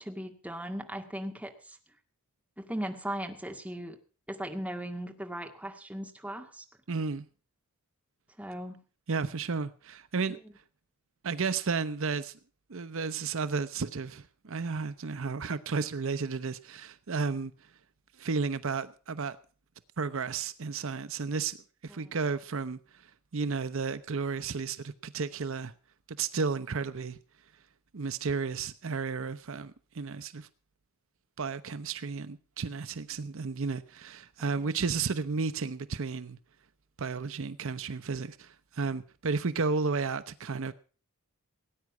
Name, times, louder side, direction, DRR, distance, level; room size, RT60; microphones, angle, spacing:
voice 1, 0.0-1.8 2.6-4.0 4.3-6.6 8.4-8.8 22.0-22.2 34.4-34.7, right 1 dB, 5° right, 1.9 m, -38 dB
voice 2, 6.9-7.3 9.1-10.4 11.2-12.4 12.7-17.5 18.2-19.4 20.0-21.6 21.8-25.7 26.1-27.2 27.9-30.5 31.4-36.4 37.0-40.7, right 4 dB, 60° right, 0.7 m, -33 dB
18.5 x 9.4 x 6.0 m
head